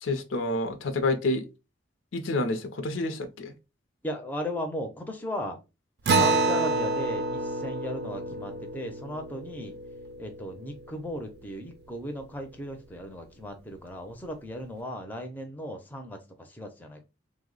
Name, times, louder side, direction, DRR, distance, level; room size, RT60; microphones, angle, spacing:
voice 1, 0.0-1.5 2.1-3.5, left 2 dB, 85° left, 0.5 m, -28 dB
voice 2, 4.0-5.6 6.1-9.8 10.2-17.0, equal, 10° left, 0.4 m, -36 dB
Acoustic guitar, 6.1-10.9, right 3 dB, 55° right, 0.4 m, -28 dB
3.1 x 2.0 x 3.7 m
head